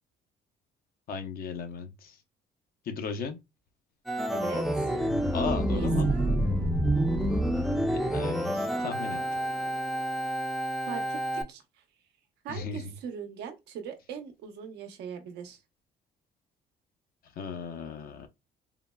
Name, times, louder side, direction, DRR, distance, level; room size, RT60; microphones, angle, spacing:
voice 1, 1.1-2.2 2.8-3.4 5.3-6.1 7.9-9.5 12.5-13.0 17.2-18.3, left 6 dB, 60° left, 0.7 m, -36 dB
Organ, 4.1-11.4, right 1 dB, ahead, 0.5 m, -28 dB
voice 2, 4.3-4.9 5.7-6.6 10.9-11.6 12.4-15.6, right 7 dB, 80° right, 0.8 m, -40 dB
3.7 x 2.1 x 2.2 m
cardioid pair, 110°, 17 cm